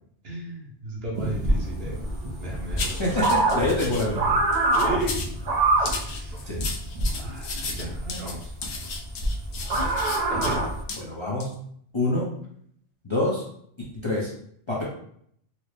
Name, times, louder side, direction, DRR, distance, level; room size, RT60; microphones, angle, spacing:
voice 1, 0.2-2.0 2.4-3.3 3.7-4.2 4.7-5.1 5.8-6.3 7.2-8.4 10.3-10.6, right 2 dB, 60° right, -3 dB, 1.2 m, -34 dB
sound 1, 1.1-10.8, right 2 dB, 45° right, 0.7 m, -26 dB
sound 2, 2.8-4.1 4.5-5.4 5.9-10.6 10.9-11.0 11.4-11.5, left 4 dB, 70° left, 0.8 m, -35 dB
voice 2, 3.0-4.2 6.4-6.6 11.0-11.6 11.9-12.3 13.0-13.4 14.0-14.3 14.7-14.8, left 2 dB, 35° left, -5 dB, 0.5 m, -26 dB
4.3 x 2.0 x 3.1 m, 0.67 s
omnidirectional pair, 1.2 m